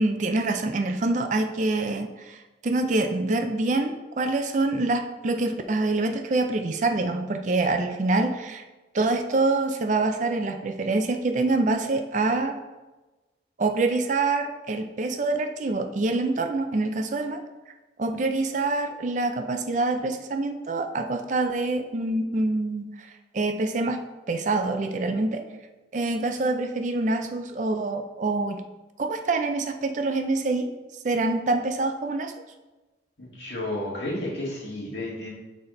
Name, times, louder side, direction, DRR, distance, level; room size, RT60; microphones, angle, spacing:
voice 1, 0.0-8.6 8.9-12.6 13.6-17.4 18.0-24.0 24.3-25.4 25.9-28.6 29.0-30.7 31.0-32.3, right 2 dB, 40° right, 6 dB, 0.4 m, -26 dB
voice 2, 33.2-35.3, left 1 dB, 75° left, -5 dB, 1.9 m, -32 dB
6.2 x 4.1 x 3.8 m, 1.1 s
head